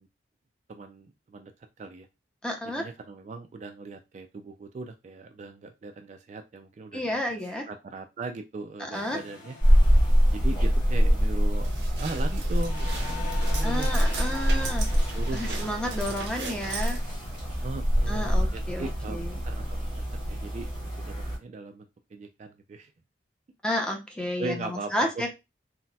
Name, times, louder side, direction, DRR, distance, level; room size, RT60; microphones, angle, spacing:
voice 1, 0.7-1.5 1.8-2.1 2.6-7.2 7.7-9.6 10.3-16.2 17.6-20.0 20.3-22.9 24.4-25.3, right 3 dB, 40° right, 5 dB, 0.3 m, -39 dB
voice 2, 2.4-2.8 6.9-7.7 8.9-9.2 13.6-14.9 15.3-17.0 18.1-19.3 23.6-25.3, left 1 dB, 5° left, 2 dB, 0.6 m, -31 dB
sound 1, 8.9-12.3 12.6-17.2, left 4 dB, 45° left, 1.3 m, -44 dB
sound 2, 9.6-21.4, equal, 25° left, 1.6 m, -25 dB
sound 3, 10.9-18.3, right 5 dB, 75° right, 0.7 m, -40 dB
4.0 x 2.1 x 2.2 m, 0.24 s
head